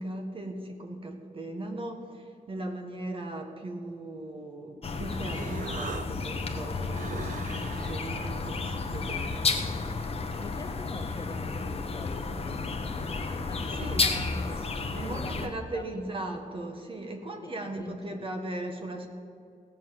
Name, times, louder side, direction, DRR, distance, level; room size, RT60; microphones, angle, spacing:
voice 1, 0.0-9.6 13.6-14.1 14.5-19.1, right 1 dB, 35° right, 4 dB, 1.7 m, -38 dB
sound 1, 4.8-15.5, left 4 dB, 40° left, 1.2 m, -32 dB
Human voice, 4.9-10.1, right 7 dB, 60° right, 0.6 m, -44 dB
voice 2, 10.4-14.6 14.9-15.9 17.4-18.2, left 3 dB, 25° left, 8 dB, 0.6 m, -45 dB
17.0 x 6.8 x 7.8 m, 2.5 s
wide cardioid pair, 115°, 15 cm